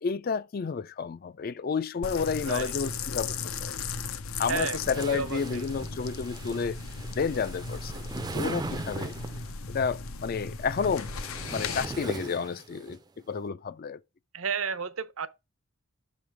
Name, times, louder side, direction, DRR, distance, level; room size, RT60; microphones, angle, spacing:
voice 1, 0.0-3.7 4.4-6.8 7.1-8.0 8.3-9.1 9.7-11.1 11.5-13.0 13.3-14.0, left 5 dB, 45° left, 0.4 m, -31 dB
sound 1, 2.0-11.9, left 4 dB, 80° left, 0.7 m, -36 dB
voice 2, 4.5-5.7 14.3-15.3, right 6 dB, 80° right, 0.7 m, -32 dB
sound 2, 4.8-9.5 10.5-13.0, right 3 dB, 20° right, 0.4 m, -39 dB
7.5 x 3.4 x 6.0 m
head